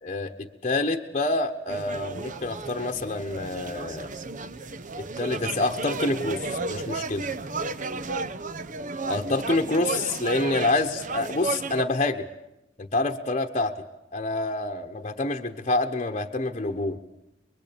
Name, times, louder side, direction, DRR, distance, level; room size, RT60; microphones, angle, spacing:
voice 1, 0.0-4.1 5.0-7.3 9.1-12.3 12.8-13.7 14.1-17.0, left 2 dB, 35° left, 4 dB, 1.2 m, -27 dB
sound 1, 1.7-11.8, right 3 dB, 45° right, 0.9 m, -33 dB
25.5 x 22.5 x 8.8 m, 0.85 s
head